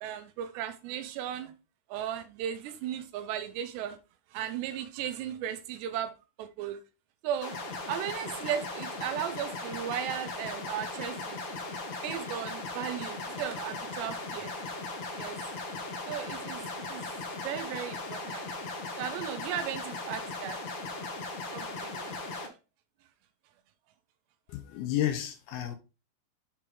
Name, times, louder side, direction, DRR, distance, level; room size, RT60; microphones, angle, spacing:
voice 1, 0.0-1.5 1.9-4.0 4.3-6.1 6.4-6.8 7.2-7.6 7.9-11.4 12.0-14.5 15.2-15.4 16.1-17.1 17.4-18.5 19.0-20.6 21.5-22.1, right 10 dB, 85° right, 3.0 m, -36 dB
sound 1, 7.4-22.5, left 3 dB, 60° left, 2.2 m, -38 dB
voice 2, 24.5-25.8, left 12 dB, 85° left, 2.3 m, -31 dB
7.3 x 4.6 x 3.7 m
omnidirectional pair, 4.8 m